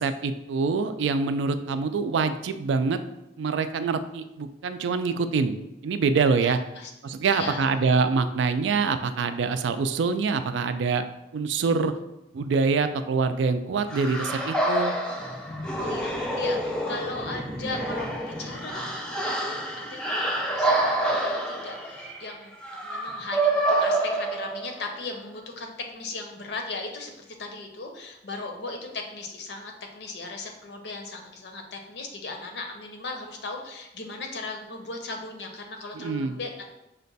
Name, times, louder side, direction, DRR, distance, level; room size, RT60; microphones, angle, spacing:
voice 1, 0.0-3.0 3.4-5.6 5.8-6.6 7.0-11.0 11.3-11.9 12.3-14.9 35.9-36.4, right 4 dB, 85° right, 10 dB, 0.3 m, -25 dB
voice 2, 6.4-6.9 7.3-7.7 15.8-36.7, left 3 dB, 70° left, 3 dB, 0.7 m, -37 dB
sound 1, 13.9-25.0, right 1 dB, 5° left, 0.3 m, -28 dB
5.6 x 2.2 x 4.0 m, 0.91 s
head